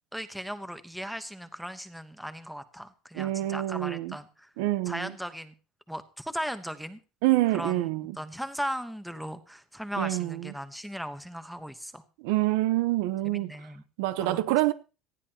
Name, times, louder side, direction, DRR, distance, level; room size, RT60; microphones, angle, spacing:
voice 1, 0.1-4.5 4.9-5.5 5.9-7.0 7.5-7.9 8.2-12.0 13.2-13.8 14.2-14.4, equal, ahead, 1.0 m, -37 dB
voice 2, 3.1-4.2 4.6-5.1 7.2-8.2 10.0-10.5 12.2-13.5 14.0-14.7, right 16 dB, 85° right, 0.9 m, -26 dB
19.0 x 14.0 x 2.9 m
cardioid pair, 160°, 0 cm